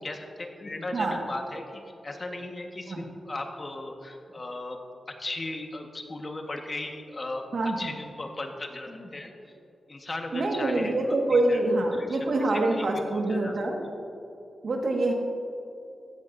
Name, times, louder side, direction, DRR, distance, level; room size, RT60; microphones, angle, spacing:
voice 1, 0.0-4.8 5.1-7.4 7.8-9.3 9.9-11.0 11.3-14.1, left 2 dB, 35° left, 3 dB, 1.5 m, -37 dB
voice 2, 10.3-13.8 14.6-15.1, right 2 dB, 65° right, 1 dB, 1.7 m, -25 dB
16.0 x 13.5 x 2.7 m, 2.9 s
wide cardioid pair, 90°, 0 cm